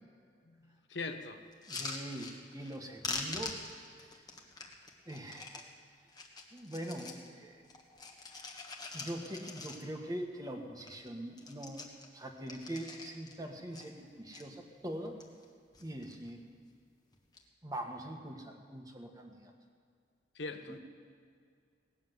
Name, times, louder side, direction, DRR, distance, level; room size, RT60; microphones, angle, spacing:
voice 1, 0.5-1.4 20.3-20.8, left 3 dB, 80° left, 7 dB, 1.0 m, -41 dB
sound 1, 1.5-2.8 3.0-5.7 6.1-7.3 7.6-10.1 10.5-10.6 10.8-11.1 11.3-13.4 13.7-14.4 15.0-15.5 15.7-16.3 17.1-17.4, left 3 dB, 20° left, 1.5 m, -44 dB
voice 2, 1.7-3.5 5.1-5.6 6.5-7.6 8.9-11.9 12.1-15.1 15.8-16.5 17.6-19.4 20.7-20.8, right 1 dB, 20° right, 3 dB, 1.4 m, -42 dB
18.5 x 7.4 x 9.3 m, 2.2 s
head